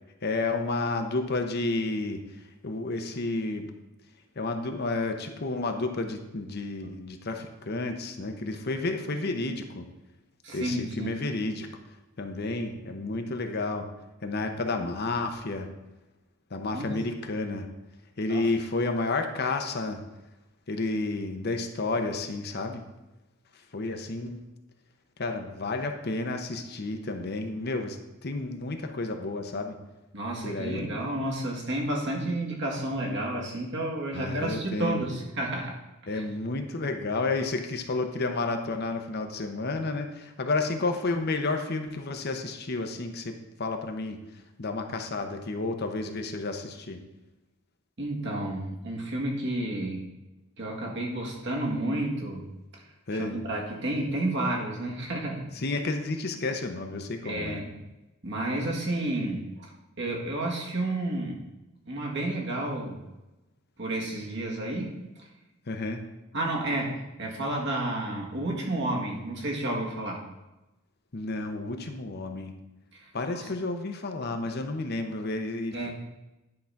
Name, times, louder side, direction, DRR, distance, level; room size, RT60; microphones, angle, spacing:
voice 1, 0.2-2.2 2.6-3.7 4.4-9.8 10.5-11.7 12.2-13.9 14.2-15.7 16.5-17.7 18.2-20.0 20.7-22.8 23.7-24.4 25.2-29.8 30.4-30.9 34.1-35.1 36.1-44.2 44.6-47.0 53.1-53.4 55.5-57.6 65.7-66.0 71.1-72.5 73.1-75.9, left 3 dB, 50° left, 5 dB, 0.8 m, -31 dB
voice 2, 10.4-11.2 16.7-17.0 18.3-18.5 30.1-35.8 36.0-36.2 48.0-50.1 50.6-52.5 53.1-55.5 57.2-57.7 58.2-59.7 60.0-61.4 61.9-63.0 63.8-65.3 66.3-70.2 72.9-73.1 73.3-73.5 75.7-75.9, right 1 dB, 55° right, -1 dB, 1.9 m, -31 dB
10.5 x 3.9 x 5.8 m, 1.0 s
head